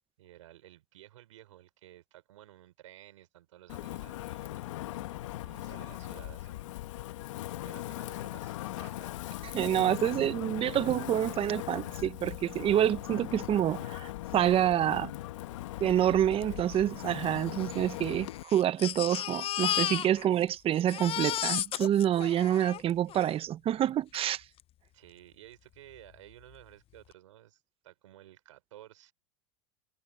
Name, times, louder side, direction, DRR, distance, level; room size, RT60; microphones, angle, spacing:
voice 1, 0.2-4.7 5.1-7.2 7.6-9.2 9.6-9.9 16.2-17.1 24.9-29.1, right 14 dB, 80° right, 6.2 m, -55 dB
Wind, 3.7-18.4, left 16 dB, 75° left, 1.7 m, -39 dB
voice 2, 9.5-15.1 15.8-24.4, right 11 dB, 35° right, 1.0 m, -27 dB
Crying sobbing, 16.4-16.5 16.7-16.8 17.6-20.5 20.7-23.3 24.1-24.2 24.6-24.7, left 12 dB, 35° left, 0.8 m, -34 dB
hypercardioid pair, 100°, 16 cm